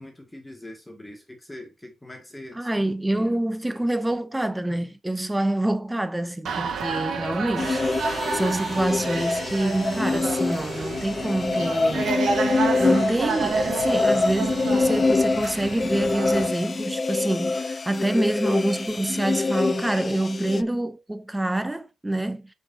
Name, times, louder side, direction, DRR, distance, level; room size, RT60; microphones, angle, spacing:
voice 1, 0.0-2.7 3.1-4.1, left 1 dB, 10° left, 2.2 m, -43 dB
voice 2, 2.5-7.8 8.3-12.1 12.8-22.5, right 1 dB, 10° right, 0.7 m, -26 dB
sound 1, 6.5-16.5, right 5 dB, 80° right, 1.5 m, -30 dB
sound 2, 7.6-20.6, left 3 dB, 35° left, 0.4 m, -25 dB
7.5 x 5.6 x 2.8 m
cardioid pair, 105°, 0 cm